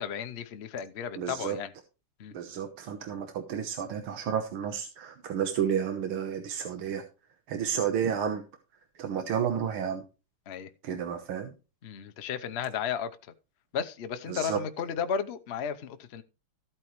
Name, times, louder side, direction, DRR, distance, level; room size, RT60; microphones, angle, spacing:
voice 1, 0.0-1.7 2.2-2.3 10.5-10.7 11.8-13.3 13.7-16.2, left 7 dB, 75° left, 0.5 m, -34 dB
voice 2, 1.2-1.6 2.3-7.1 7.5-8.4 9.0-10.0 10.8-11.5 14.3-14.6, right 8 dB, 80° right, 2.0 m, -31 dB
14.0 x 9.0 x 3.1 m
omnidirectional pair, 2.4 m